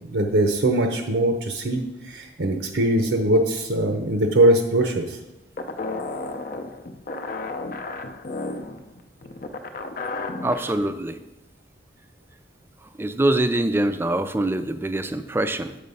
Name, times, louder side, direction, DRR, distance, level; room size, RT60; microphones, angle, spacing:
voice 1, 0.1-5.1, right 1 dB, 90° right, 4 dB, 0.8 m, -21 dB
sound 1, 5.6-10.7, left 3 dB, 50° left, 0.5 m, -32 dB
voice 2, 10.4-11.2 13.0-15.8, right 1 dB, 15° right, 11 dB, 0.3 m, -24 dB
6.6 x 5.2 x 5.4 m, 0.95 s
head